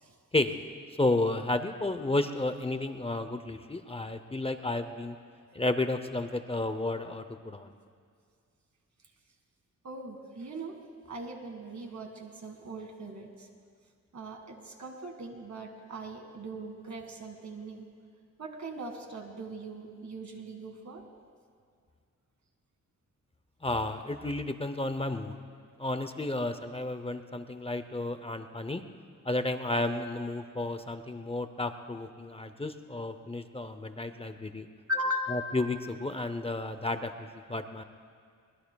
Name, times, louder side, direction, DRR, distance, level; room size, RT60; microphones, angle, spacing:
voice 1, 1.0-5.2 5.5-7.7 23.6-25.4 25.8-28.8 29.2-34.7 35.3-37.8, left 2 dB, 20° left, 9 dB, 0.6 m, -32 dB
voice 2, 9.8-10.8 11.1-13.3 14.1-17.8 18.4-21.0 34.9-35.6, equal, 65° right, 4 dB, 1.9 m, -39 dB
22.5 x 20.5 x 2.3 m, 2.1 s
wide cardioid pair, 100°, 30 cm